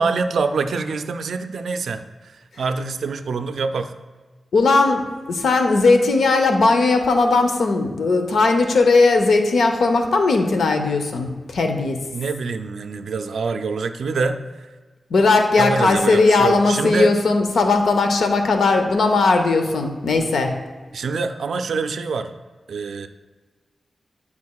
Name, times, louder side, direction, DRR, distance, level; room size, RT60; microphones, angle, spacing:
voice 1, 0.0-3.9 12.1-14.7 15.6-17.1 20.9-22.3 22.7-23.1, right 4 dB, 85° right, 9 dB, 0.3 m, -25 dB
voice 2, 4.5-12.0 15.1-20.6, left 3 dB, 85° left, 5 dB, 0.6 m, -18 dB
10.5 x 4.1 x 2.3 m, 1.4 s
cardioid pair, 60°, 0 cm